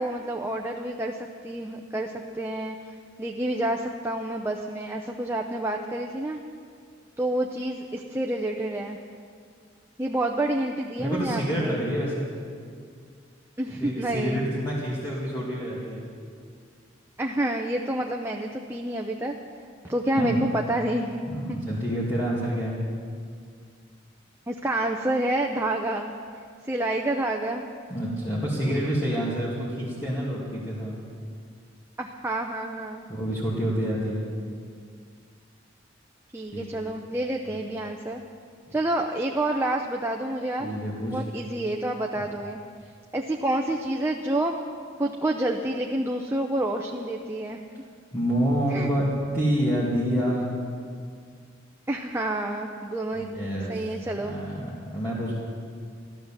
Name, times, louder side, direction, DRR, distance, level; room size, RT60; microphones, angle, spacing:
voice 1, 0.0-6.4 7.2-9.0 10.0-11.7 13.6-14.4 17.2-19.4 19.8-21.2 21.5-21.6 24.5-27.6 28.6-28.9 32.0-33.0 36.3-38.2 38.7-40.7 41.0-42.6 43.1-44.5 45.0-47.6 48.7-48.9 51.9-53.4 53.7-54.3, right 1 dB, 15° right, 1 dB, 0.6 m, -28 dB
voice 2, 11.0-12.3 13.8-16.1 20.2-20.4 21.2-22.8 27.9-31.0 33.1-34.2 36.5-36.7 37.4-37.6 38.7-38.8 40.6-41.2 42.2-42.3 48.1-49.1 49.3-50.5 53.1-55.3, equal, 20° left, -8 dB, 2.3 m, -28 dB
14.5 x 12.0 x 7.4 m, 2.2 s
head